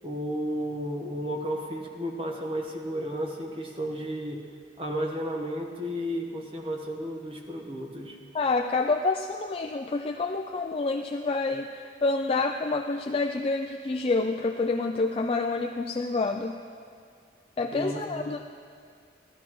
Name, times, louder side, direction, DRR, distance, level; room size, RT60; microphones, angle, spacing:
voice 1, 0.0-4.4 4.8-8.2 17.7-18.4, equal, 30° right, 1 dB, 1.1 m, -33 dB
voice 2, 8.3-16.5 17.6-18.4, left 3 dB, 30° left, 4 dB, 0.3 m, -28 dB
16.0 x 12.5 x 3.0 m, 2.3 s
head